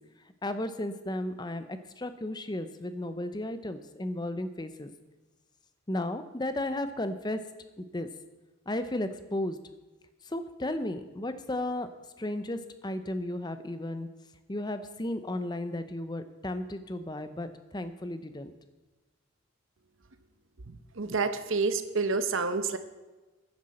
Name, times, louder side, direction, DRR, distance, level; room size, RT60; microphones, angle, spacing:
voice 1, 0.4-4.9 5.9-7.4 7.8-8.1 8.7-9.6 10.2-11.9 12.2-14.1 14.5-18.5, left 1 dB, 20° left, 10 dB, 0.7 m, -34 dB
voice 2, 21.0-22.8, right 4 dB, 60° right, 10 dB, 0.9 m, -28 dB
14.0 x 10.5 x 4.3 m, 1.2 s
head